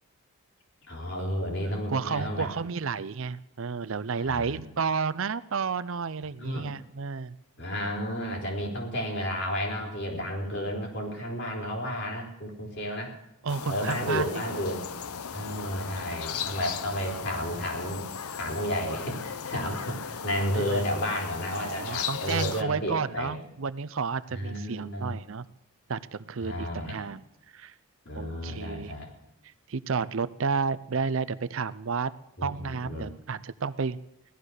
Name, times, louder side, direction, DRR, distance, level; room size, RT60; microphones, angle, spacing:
voice 1, 0.9-2.5 4.2-4.6 6.4-6.7 7.6-13.1 13.7-14.8 15.3-18.1 18.4-23.4 24.3-25.2 26.4-27.0 28.0-29.1 32.4-33.1, equal, 50° left, 0 dB, 4.2 m, -32 dB
voice 2, 1.6-7.4 13.4-14.4 20.5-20.8 21.5-25.5 25.9-27.2 27.5-27.7 28.2-29.0 29.7-32.1 32.4-34.0, right 5 dB, 60° right, 15 dB, 0.5 m, -31 dB
sound 1, 13.5-22.6, left 7 dB, 80° left, 0.7 m, -37 dB
16.5 x 12.5 x 6.5 m, 0.85 s
head